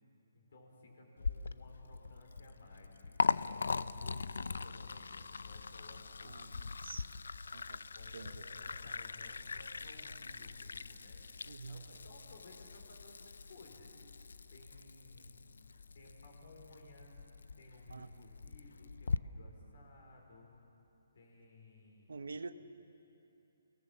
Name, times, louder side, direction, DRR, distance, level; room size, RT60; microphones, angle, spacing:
voice 1, 0.3-6.9 7.9-11.2 11.7-13.9 14.5-15.4 15.9-17.1 17.6-20.5 21.1-22.3, left 2 dB, 45° left, 1 dB, 4.9 m, -58 dB
Liquid, 1.2-19.2, left 4 dB, 80° left, 0.5 m, -41 dB
voice 2, 6.2-7.1 7.5-7.9 8.1-8.4 11.5-11.9 17.9-18.1 22.1-22.5, right 4 dB, 90° right, 10 dB, 1.2 m, -47 dB
29.5 x 19.0 x 7.5 m, 3.0 s
hypercardioid pair, 180°, 0 cm